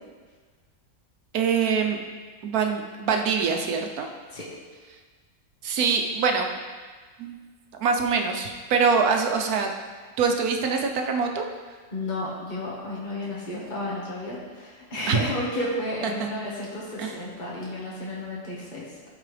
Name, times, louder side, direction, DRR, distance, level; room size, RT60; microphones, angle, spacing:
voice 1, 1.3-2.0 2.4-4.1 5.6-6.5 7.2-7.3 7.7-9.7 10.2-11.5 15.1-15.2 16.0-16.3 17.0-17.1, right 5 dB, 85° right, 4 dB, 1.3 m, -24 dB
voice 2, 11.9-19.1, left 1 dB, 35° left, -6 dB, 1.7 m, -32 dB
13.5 x 4.6 x 3.3 m, 1.5 s
omnidirectional pair, 1.5 m